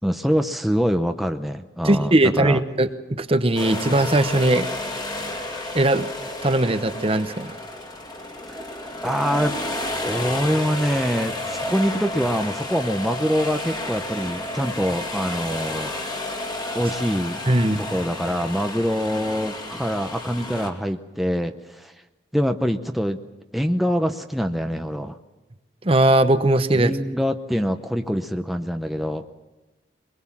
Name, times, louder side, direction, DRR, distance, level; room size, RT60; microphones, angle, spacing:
voice 1, 0.0-2.6 8.5-8.6 9.0-9.6 10.0-15.9 16.7-17.4 17.8-21.9 22.3-23.2 23.5-25.2 26.7-29.3, equal, ahead, 5 dB, 0.7 m, -24 dB
voice 2, 1.8-2.9 3.2-4.7 5.7-6.1 6.4-7.5 17.5-17.8 25.8-26.9, right 1 dB, 30° right, 11 dB, 0.9 m, -19 dB
sound 1, 3.6-20.7, left 1 dB, 20° left, 2.2 m, -31 dB
23.5 x 21.5 x 7.3 m, 1.1 s
head